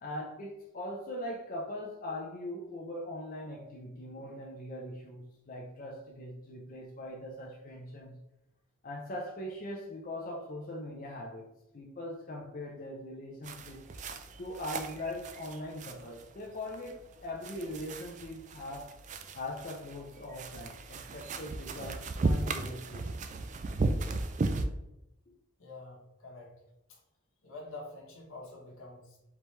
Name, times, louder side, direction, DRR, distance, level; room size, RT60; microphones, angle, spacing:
voice 1, 0.0-8.2 8.8-11.5 11.7-13.8 14.4-18.9 19.3-23.1 25.3-25.4, left 1 dB, 40° left, -2 dB, 0.5 m, -41 dB
sound 1, 13.4-24.6, right 3 dB, 35° right, 0.3 m, -36 dB
voice 2, 25.6-26.5 26.9-27.0 27.4-29.2, left 2 dB, 75° left, -1 dB, 1.3 m, -47 dB
4.9 x 3.2 x 3.2 m, 0.88 s
head